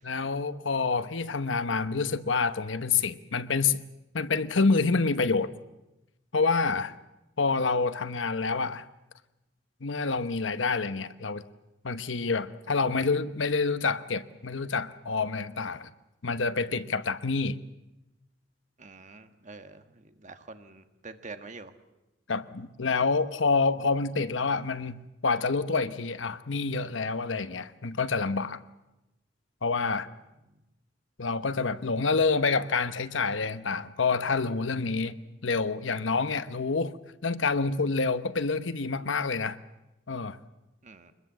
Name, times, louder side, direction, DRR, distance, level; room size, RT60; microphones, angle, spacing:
voice 1, 0.0-3.8 4.1-5.5 6.3-6.9 7.4-8.8 9.8-11.4 11.8-15.9 16.2-17.6 22.3-28.6 29.6-30.1 31.2-35.1 35.4-36.9 37.2-39.6 40.1-40.4, left 4 dB, 75° left, 12 dB, 1.0 m, -27 dB
voice 2, 18.8-21.7 40.8-41.1, right 3 dB, 40° right, 8 dB, 1.6 m, -46 dB
24.0 x 21.0 x 7.5 m, 0.98 s
head